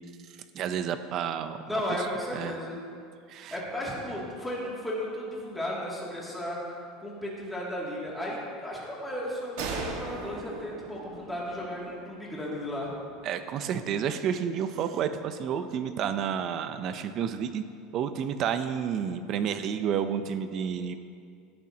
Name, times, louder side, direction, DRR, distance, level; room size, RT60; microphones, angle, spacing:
voice 1, 0.5-1.6 1.9-2.1 2.3-2.6 3.3-3.6 13.2-17.6 17.9-21.0, right 8 dB, 35° right, 10 dB, 0.6 m, -30 dB
voice 2, 1.7-2.8 3.5-6.6 7.0-12.9, left 1 dB, 5° left, -6 dB, 2.5 m, -34 dB
sound 1, 9.6-13.1, right 4 dB, 70° right, 1.6 m, -39 dB
17.5 x 11.0 x 2.9 m, 2.3 s
supercardioid pair, 160°, 0 cm